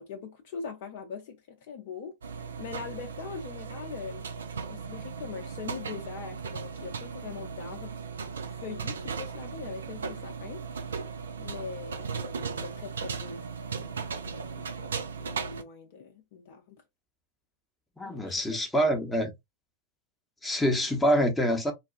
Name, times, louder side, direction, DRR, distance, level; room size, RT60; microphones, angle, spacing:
voice 1, 0.0-4.3 4.5-8.0 8.5-10.6 11.4-16.8 18.0-18.6, left 6 dB, 50° left, 0.6 m, -42 dB
sound 1, 2.2-15.6, right 5 dB, 70° right, 0.4 m, -37 dB
voice 2, 18.0-19.3 20.4-21.7, equal, 5° left, 0.8 m, -26 dB
4.0 x 2.3 x 2.4 m
figure-of-eight pair, 90°, 0 cm